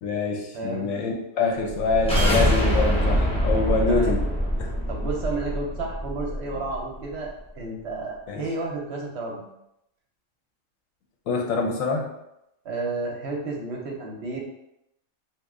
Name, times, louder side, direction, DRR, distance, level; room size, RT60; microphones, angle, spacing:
voice 1, 0.0-4.2 4.6-4.7 8.3-8.4 11.3-12.1, left 3 dB, 80° left, 1 dB, 1.0 m, -25 dB
voice 2, 0.5-0.9 3.9-4.2 4.9-9.4 12.6-14.4, right 3 dB, 60° right, 0 dB, 0.8 m, -31 dB
sound 1, 1.7-6.8, equal, 10° left, 0.4 m, -24 dB
3.0 x 2.4 x 3.5 m, 0.83 s
omnidirectional pair, 1.4 m